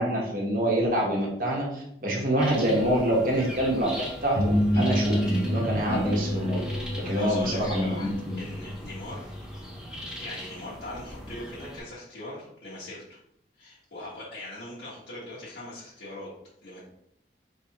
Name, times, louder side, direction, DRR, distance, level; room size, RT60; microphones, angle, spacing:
voice 1, 0.0-3.9 4.2-6.6 6.9-8.4, right 1 dB, 50° right, -2 dB, 1.1 m, -26 dB
sound 1, 2.4-11.8, equal, 5° right, 0.7 m, -41 dB
sound 2, 4.3-10.0, equal, 60° left, 1.1 m, -28 dB
voice 2, 6.7-8.1 8.4-9.3 10.2-13.2 13.6-16.3 16.6-16.8, left 1 dB, 80° left, -10 dB, 1.3 m, -40 dB
4.7 x 3.4 x 2.9 m, 0.75 s
head